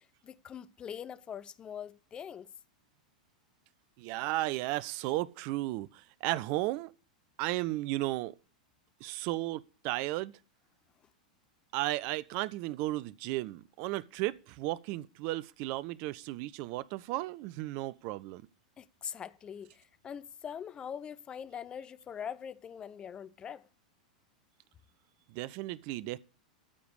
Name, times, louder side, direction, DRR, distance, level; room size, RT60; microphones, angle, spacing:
voice 1, 0.0-2.5 18.8-23.7, left 8 dB, 25° left, 0.6 m, -43 dB
voice 2, 4.0-6.9 7.4-8.3 9.0-10.3 11.7-18.4 25.3-26.2, right 18 dB, 45° right, 0.6 m, -34 dB
14.0 x 5.0 x 8.0 m
figure-of-eight pair, 90°, 4 cm